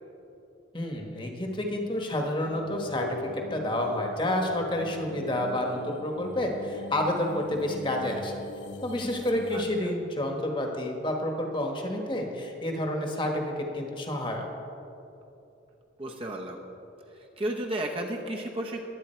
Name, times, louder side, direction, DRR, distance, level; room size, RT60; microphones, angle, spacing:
voice 1, 0.7-8.3 8.8-14.5, left 1 dB, 25° left, 2 dB, 1.3 m, -29 dB
sound 1, 2.4-9.6, left 2 dB, 70° left, 0.9 m, -40 dB
voice 2, 16.0-16.6 17.1-18.9, right 1 dB, 30° right, 1 dB, 0.9 m, -33 dB
21.5 x 8.6 x 4.5 m, 2.9 s
head